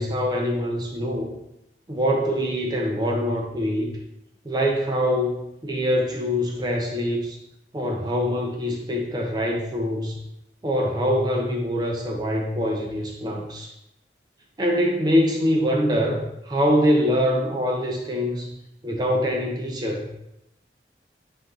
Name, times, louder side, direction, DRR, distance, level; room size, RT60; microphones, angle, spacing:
voice 1, 0.0-1.3 1.9-3.9 4.4-7.4 7.7-10.2 10.6-13.7 14.6-18.6 18.8-20.1, equal, 25° right, 0 dB, 0.4 m, -24 dB
3.9 x 3.5 x 2.7 m, 0.83 s
head